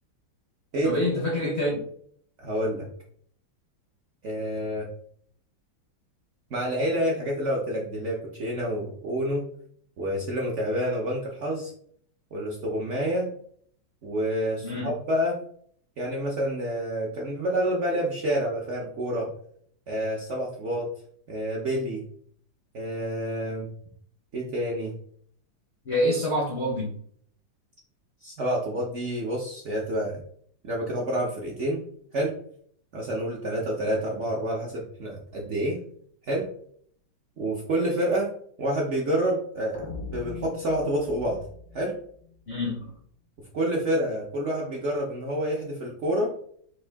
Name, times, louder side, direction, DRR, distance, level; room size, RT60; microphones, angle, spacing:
voice 1, 0.8-1.7 14.6-14.9 25.9-27.0 42.5-42.9, left 1 dB, 60° left, -2 dB, 0.7 m, -26 dB
voice 2, 2.4-2.9 4.2-4.9 6.5-9.4 10.0-11.7 12.3-13.3 14.0-15.4 16.0-19.3 19.9-20.9 21.3-22.0 22.7-23.7 24.3-24.9 28.2-30.2 30.6-31.8 32.1-32.4 32.9-35.8 36.2-36.5 37.4-38.3 38.6-41.4 41.7-41.9 43.5-46.3, equal, 75° right, -2 dB, 0.6 m, -28 dB
sound 1, 39.7-42.8, left 4 dB, 90° left, 1.4 m, -41 dB
4.6 x 2.6 x 3.3 m, 0.62 s
omnidirectional pair, 2.1 m